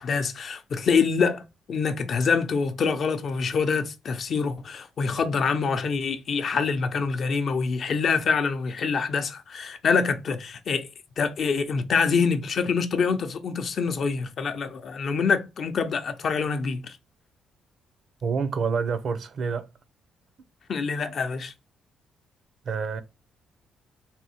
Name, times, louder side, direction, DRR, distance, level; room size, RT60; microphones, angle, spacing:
voice 1, 0.0-10.9 11.2-17.0 20.7-21.5, left 5 dB, 55° left, 0.6 m, -25 dB
voice 2, 18.2-19.7 22.6-23.0, right 5 dB, 55° right, 0.6 m, -27 dB
3.5 x 2.7 x 4.3 m
cardioid pair, 90°, 0 cm